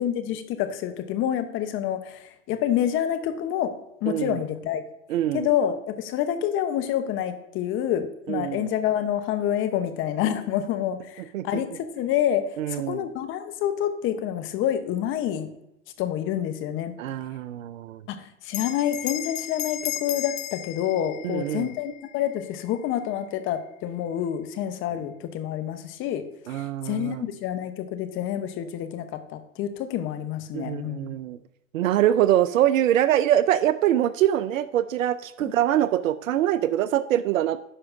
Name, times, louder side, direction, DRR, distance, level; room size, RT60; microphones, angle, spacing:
voice 1, 0.0-3.8 4.0-4.8 5.3-15.5 16.0-16.9 18.1-26.2 26.5-31.1 35.4-35.5, left 10 dB, 30° left, 9 dB, 0.8 m, -28 dB
voice 2, 4.1-4.4 5.1-5.5 8.3-8.7 11.3-11.4 12.6-13.0 17.0-18.0 21.2-21.7 26.5-27.3 30.5-31.4 31.7-37.6, right 12 dB, 80° right, 14 dB, 0.5 m, -24 dB
Bell, 18.5-23.4, left 12 dB, 70° left, 0.7 m, -36 dB
9.8 x 5.9 x 2.5 m, 0.87 s
hypercardioid pair, 120°, 39 cm